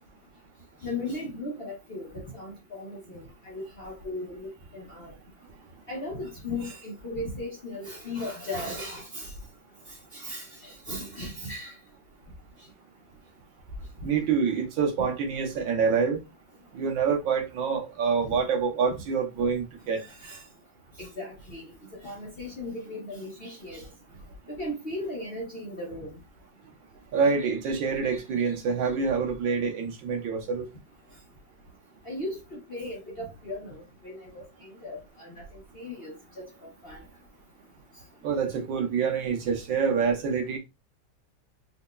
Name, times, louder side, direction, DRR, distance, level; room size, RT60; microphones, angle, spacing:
voice 1, 0.8-5.1 5.9-9.3 10.1-11.8 18.2-18.4 20.0-20.4 21.0-21.6 22.0-23.9 24.6-26.1 32.0-35.4 35.7-36.4 36.8-37.0, left 1 dB, 40° left, 0.9 m, -37 dB
voice 2, 14.0-16.2 16.7-20.0 27.1-30.7 38.2-40.6, right 5 dB, 80° right, 1.6 m, -26 dB
4.2 x 3.0 x 2.2 m
omnidirectional pair, 2.1 m